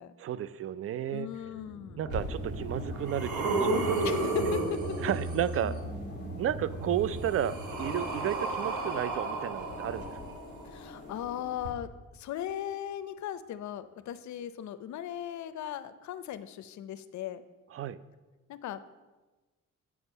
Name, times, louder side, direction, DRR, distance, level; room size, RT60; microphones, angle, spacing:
voice 1, 0.2-1.3 2.0-4.0 5.0-5.9 6.4-10.0 17.7-18.0, right 10 dB, 50° right, 16 dB, 0.4 m, -32 dB
voice 2, 1.1-2.0 4.0-5.0 6.6-6.7 10.6-17.4 18.5-18.8, left 10 dB, 70° left, 13 dB, 0.6 m, -38 dB
sound 1, 1.3-10.4 10.8-10.9, right 1 dB, 30° right, 3.3 m, -40 dB
sound 2, 2.0-11.6, left 3 dB, 35° left, 1.2 m, -46 dB
sound 3, 2.1-2.2 2.8-5.5 6.7-10.6 11.6-11.7, right 2 dB, 80° right, 1.6 m, -32 dB
7.9 x 6.1 x 5.4 m, 1.2 s
cardioid pair, 90°, 30 cm